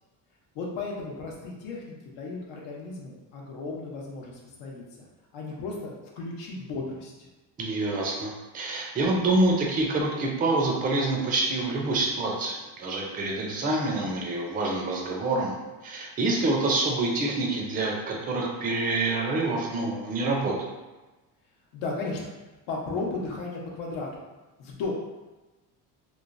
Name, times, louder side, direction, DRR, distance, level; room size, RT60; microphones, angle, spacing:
voice 1, 0.5-5.1 5.3-7.3 21.7-22.2 22.7-24.2 24.6-24.9, left 3 dB, 90° left, -2 dB, 0.8 m, -35 dB
voice 2, 7.6-15.6 15.8-20.5, right 2 dB, 20° right, -1 dB, 0.3 m, -26 dB
3.1 x 2.0 x 2.4 m, 1.2 s
cardioid pair, 140°, 43 cm